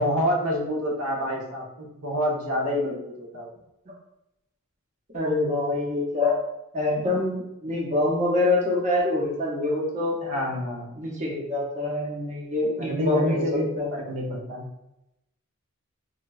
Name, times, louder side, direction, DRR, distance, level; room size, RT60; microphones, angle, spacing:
voice 1, 0.0-3.5 10.2-11.0 12.8-14.7, equal, 85° right, -2 dB, 0.7 m, -27 dB
voice 2, 5.1-6.4 6.7-10.2 11.0-13.9, left 2 dB, 35° right, -3 dB, 0.6 m, -25 dB
3.9 x 2.2 x 2.3 m, 0.88 s
head